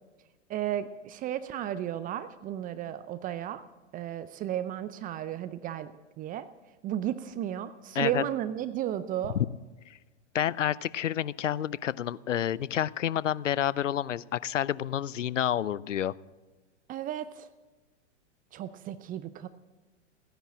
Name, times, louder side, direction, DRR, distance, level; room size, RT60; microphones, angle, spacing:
voice 1, 0.5-3.6 3.9-5.9 6.2-6.5 6.8-9.4 16.9-17.5 18.5-19.5, right 11 dB, 25° right, 13 dB, 0.6 m, -33 dB
voice 2, 10.3-16.1, left 10 dB, 85° left, 21 dB, 0.6 m, -29 dB
16.0 x 10.5 x 7.4 m, 1.2 s
hypercardioid pair, 105°, 36 cm